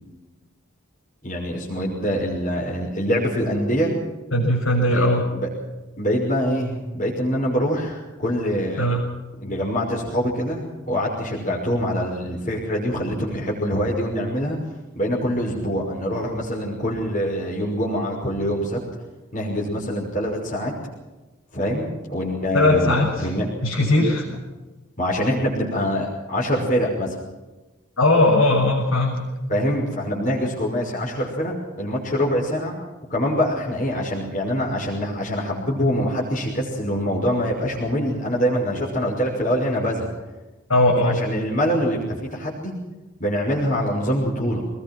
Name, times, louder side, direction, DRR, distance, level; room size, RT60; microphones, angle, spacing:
voice 1, 1.2-3.9 4.9-5.1 5.3-5.5 6.0-8.9 9.4-14.6 15.0-18.8 19.3-20.7 21.5-23.4 24.2-24.4 25.0-27.2 29.5-32.8 33.1-40.1 41.0-42.7 43.2-44.6, equal, 35° left, -3 dB, 5.9 m, -24 dB
voice 2, 4.3-5.2 8.8-9.0 22.5-23.3 23.6-24.2 28.0-29.1 40.7-41.2, left 1 dB, 70° left, -4 dB, 6.9 m, -19 dB
25.5 x 21.0 x 6.1 m, 1.1 s
head